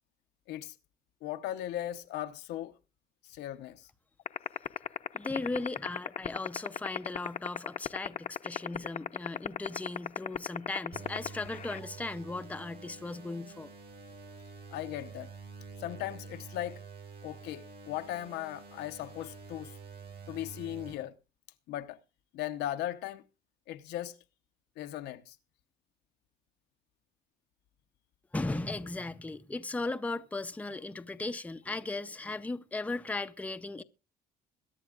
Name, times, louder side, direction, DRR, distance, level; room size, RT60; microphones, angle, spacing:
voice 1, 1.2-2.8 3.2-3.9 14.7-15.3 15.8-16.8 17.2-19.7 20.3-21.2 21.7-22.0 22.3-23.2 23.7-24.2 24.8-25.4, left 13 dB, 85° left, 0.8 m, -38 dB
sound 1, 4.3-11.8, left 9 dB, 45° left, 0.7 m, -31 dB
voice 2, 5.1-13.7 28.3-33.8, left 2 dB, 10° left, 0.6 m, -37 dB
sound 2, 10.9-20.9, right 5 dB, 65° right, 7.7 m, -48 dB
22.0 x 10.5 x 2.4 m
cardioid pair, 110°, 17 cm